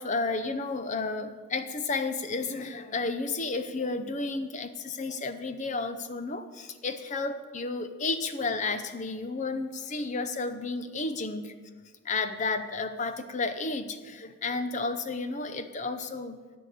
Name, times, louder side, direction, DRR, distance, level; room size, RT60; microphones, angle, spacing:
voice 1, 0.0-11.5 12.0-16.4, left 3 dB, 35° left, 9 dB, 0.6 m, -32 dB
11.5 x 5.6 x 8.3 m, 1.5 s
head